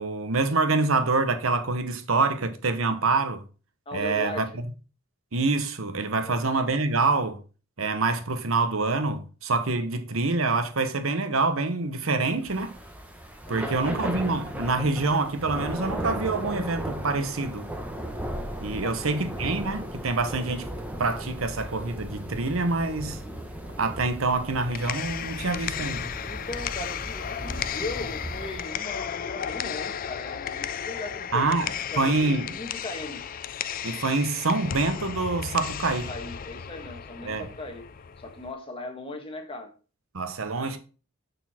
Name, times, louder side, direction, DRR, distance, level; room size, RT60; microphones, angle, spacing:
voice 1, 0.0-3.4 3.9-4.4 5.3-7.4 7.8-12.7 13.5-17.7 18.6-20.7 21.0-23.2 23.8-26.1 31.3-32.4 33.8-36.1 37.2-37.5 40.1-40.8, right 3 dB, 90° right, 1.1 m, -26 dB
voice 2, 3.8-4.5 6.2-6.4 13.5-13.8 18.7-19.1 26.2-31.4 31.9-33.2 36.1-37.9 38.2-39.7, left 2 dB, 25° left, 1.6 m, -38 dB
Thunder / Rain, 12.4-28.7, equal, 5° right, 1.2 m, -36 dB
sound 1, 24.5-38.5, left 8 dB, 45° left, 0.4 m, -34 dB
6.8 x 6.2 x 4.3 m
head